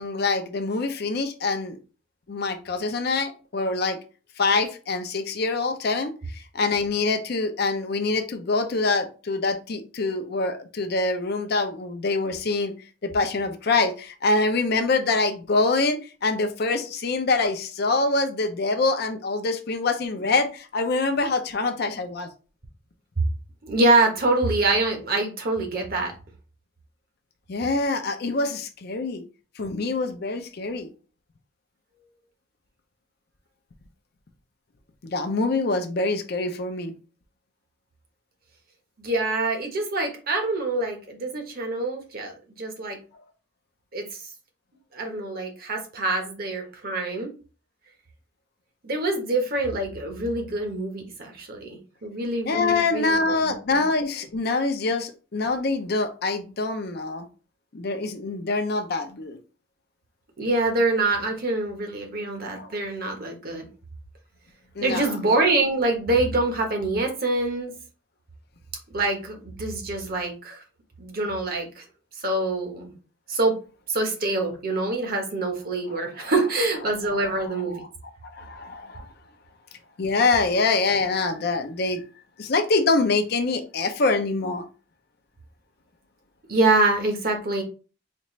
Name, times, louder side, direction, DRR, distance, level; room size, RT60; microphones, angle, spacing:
voice 1, 0.0-1.8 2.3-4.0 4.4-12.7 13.0-22.3 27.5-29.2 29.6-30.9 35.0-36.9 52.5-57.3 57.7-59.4 62.6-62.7 64.8-65.2 76.2-76.3 78.2-79.0 80.0-82.0 82.4-84.6, left 3 dB, 50° left, 7 dB, 0.5 m, -25 dB
voice 2, 23.6-26.1 39.0-43.0 43.9-44.1 44.9-47.3 48.8-53.8 60.4-63.7 64.8-67.7 68.9-70.6 71.0-71.8 72.2-72.9 73.3-73.6 73.9-77.8 86.5-87.6, right 2 dB, 50° right, 3 dB, 1.0 m, -25 dB
4.2 x 2.5 x 3.1 m, 0.35 s
head